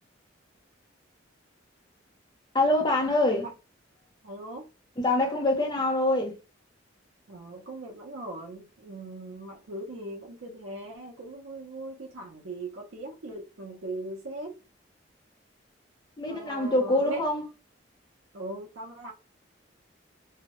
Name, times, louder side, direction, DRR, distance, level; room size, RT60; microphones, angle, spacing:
voice 1, 2.5-3.5 5.0-6.3 16.2-17.4, left 2 dB, 20° left, 0.6 m, -25 dB
voice 2, 4.2-4.7 7.3-14.5 16.3-17.3 18.3-19.1, right 2 dB, 85° right, 0.6 m, -39 dB
2.7 x 2.1 x 2.9 m
head